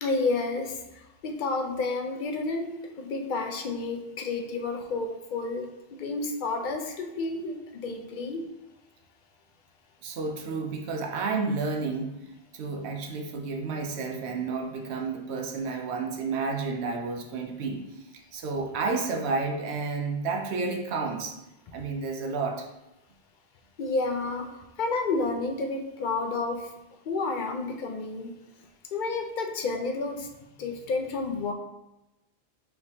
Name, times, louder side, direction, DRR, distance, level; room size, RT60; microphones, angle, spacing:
voice 1, 0.0-0.8 1.2-8.5 23.8-26.7 27.1-28.3 28.9-30.3 30.6-31.5, left 3 dB, 60° left, 4 dB, 0.6 m, -30 dB
voice 2, 10.0-12.2 12.5-21.4 21.7-22.7, right 4 dB, 85° right, 3 dB, 0.9 m, -31 dB
5.0 x 3.4 x 2.7 m, 0.94 s
omnidirectional pair, 1.1 m